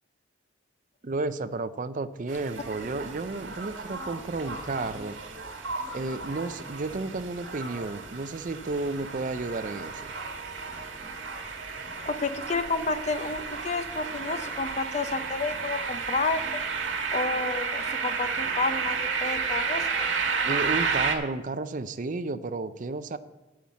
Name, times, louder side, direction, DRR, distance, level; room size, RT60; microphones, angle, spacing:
voice 1, 1.0-5.2 5.9-10.1 20.4-23.2, right 3 dB, 45° right, 13 dB, 0.5 m, -32 dB
sound 1, 2.3-21.1, right 5 dB, 85° right, 1.7 m, -32 dB
voice 2, 12.1-16.6 17.1-19.9, left 3 dB, 35° left, 10 dB, 0.7 m, -30 dB
9.3 x 7.1 x 7.4 m, 1.1 s
head